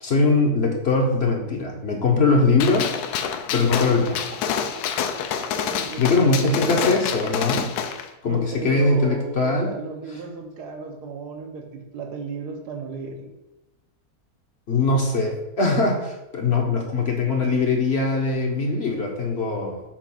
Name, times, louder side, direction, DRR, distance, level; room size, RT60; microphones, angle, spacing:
voice 1, 0.0-2.9 3.5-4.1 6.0-7.7 8.2-9.7 14.7-19.8, left 3 dB, 50° left, 1 dB, 0.9 m, -21 dB
Gunshot gunfire, 2.6-8.0, left 7 dB, 80° left, 1.1 m, -27 dB
voice 2, 4.1-5.0 5.6-6.9 8.2-13.3 16.4-16.6, right 4 dB, 85° right, 4 dB, 1.4 m, -35 dB
7.1 x 2.5 x 5.6 m, 0.97 s
omnidirectional pair, 1.7 m